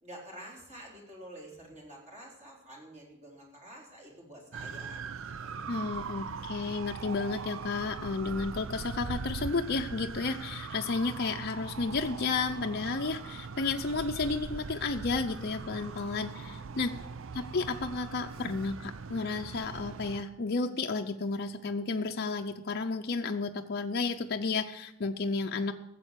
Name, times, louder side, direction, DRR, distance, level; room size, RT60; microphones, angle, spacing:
voice 1, 0.0-5.7 16.4-17.2, right 1 dB, 35° right, -1 dB, 3.9 m, -49 dB
sound 1, 4.5-20.2, right 5 dB, 65° right, 0.6 m, -41 dB
voice 2, 5.7-16.9 17.3-25.7, left 4 dB, 50° left, 3 dB, 0.6 m, -32 dB
14.0 x 7.7 x 8.1 m, 0.86 s
head